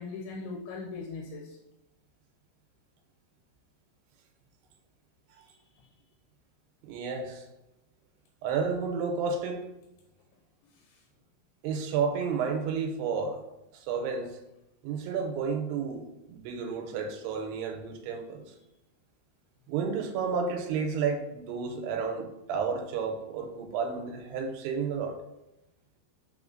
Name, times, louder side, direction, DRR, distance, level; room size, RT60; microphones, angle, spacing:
voice 1, 0.0-1.6 5.4-5.9 10.7-11.0, left 4 dB, 80° left, 0 dB, 2.5 m, -41 dB
voice 2, 6.8-7.5 8.4-9.6 11.6-13.4 13.7-14.3 14.8-18.5 19.7-25.2, right 5 dB, 90° right, 4 dB, 2.6 m, -31 dB
5.4 x 3.7 x 2.5 m, 0.92 s
omnidirectional pair, 4.6 m